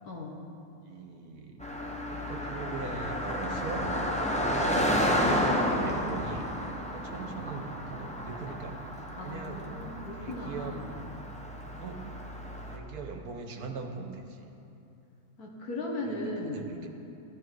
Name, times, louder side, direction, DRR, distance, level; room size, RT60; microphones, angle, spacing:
voice 1, 0.8-1.7 2.0-6.5 6.8-8.9 9.2-9.7 10.2-10.8 11.8-12.1 12.7-14.6 16.0-16.2 16.5-16.9, right 4 dB, 70° right, 4 dB, 1.6 m, -40 dB
Car passing by, 1.6-12.8, equal, 5° left, 0.8 m, -31 dB
voice 2, 9.2-10.9 15.4-16.9, left 1 dB, 70° left, 0 dB, 1.9 m, -37 dB
13.5 x 12.0 x 4.7 m, 2.9 s
omnidirectional pair, 1.7 m